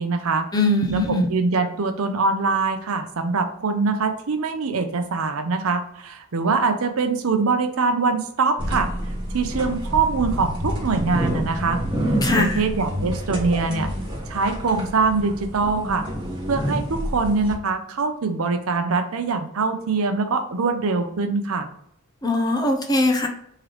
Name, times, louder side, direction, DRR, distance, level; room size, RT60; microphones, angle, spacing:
voice 1, 0.0-0.5 0.9-1.0 1.3-8.9 9.3-11.8 12.4-13.9 14.3-16.0 16.5-21.7, right 4 dB, 70° right, 7 dB, 0.6 m, -23 dB
voice 2, 0.5-1.3 12.2-12.6 22.2-23.3, left 1 dB, 15° left, 3 dB, 0.6 m, -21 dB
sound 1, 8.6-17.5, equal, 20° right, 1.1 m, -28 dB
3.7 x 3.2 x 3.1 m, 0.69 s
head